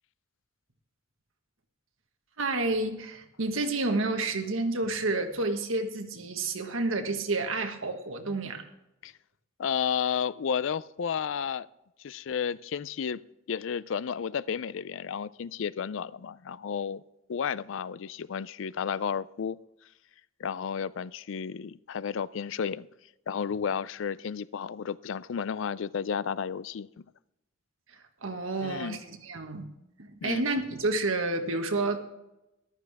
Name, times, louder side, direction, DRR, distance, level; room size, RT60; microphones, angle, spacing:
voice 1, 2.4-8.6 28.2-29.7 30.0-32.0, right 2 dB, 90° right, 1.6 m, -30 dB
voice 2, 9.6-11.7 12.0-13.2 13.5-17.0 17.3-19.6 20.4-22.9 23.3-26.9 28.6-29.0 30.2-30.4, left 7 dB, 65° left, 0.4 m, -32 dB
14.5 x 12.5 x 3.5 m
head